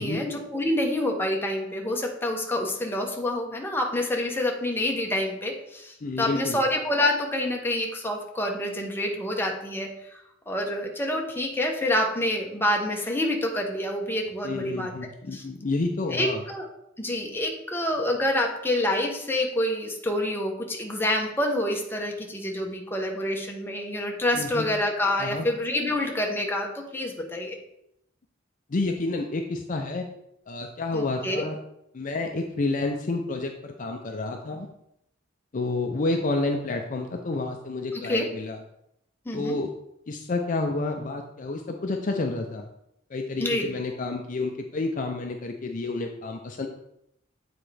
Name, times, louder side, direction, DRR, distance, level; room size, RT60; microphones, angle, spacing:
voice 1, 0.0-9.9 10.5-14.9 15.3-15.4 16.1-16.7 17.0-27.6 30.9-31.4 37.9-38.3 39.3-39.6 43.4-43.7, left 1 dB, 10° left, 1 dB, 0.9 m, -27 dB
voice 2, 6.0-6.6 14.4-16.4 24.3-24.7 25.2-25.5 28.7-30.1 30.5-31.6 31.9-34.7 35.5-38.6 39.3-39.7 40.1-42.6 43.1-46.7, left 3 dB, 45° left, 3 dB, 0.5 m, -29 dB
8.2 x 4.3 x 3.3 m, 0.78 s
head